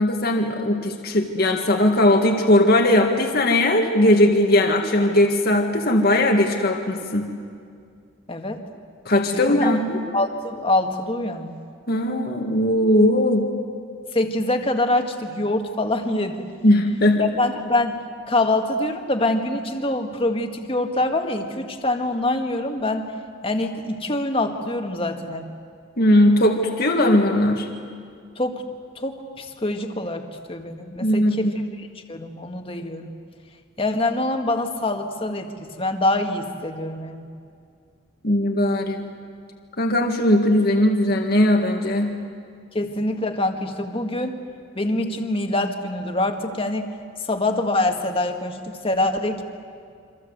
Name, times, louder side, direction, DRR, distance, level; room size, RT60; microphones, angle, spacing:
voice 1, 0.0-7.3 9.1-10.0 11.9-13.5 16.6-17.2 26.0-27.7 31.0-31.5 38.2-39.1 39.8-42.2, left 1 dB, 50° left, 2 dB, 1.9 m, -19 dB
voice 2, 8.3-8.6 9.3-9.7 10.1-11.6 14.1-16.5 17.2-18.0 18.3-23.1 23.4-25.5 28.4-28.6 29.0-31.5 31.8-33.1 33.8-37.2 42.7-44.4 44.8-46.8 47.2-49.4, left 2 dB, 30° left, 4 dB, 1.9 m, -25 dB
28.0 x 25.0 x 8.1 m, 2.3 s
head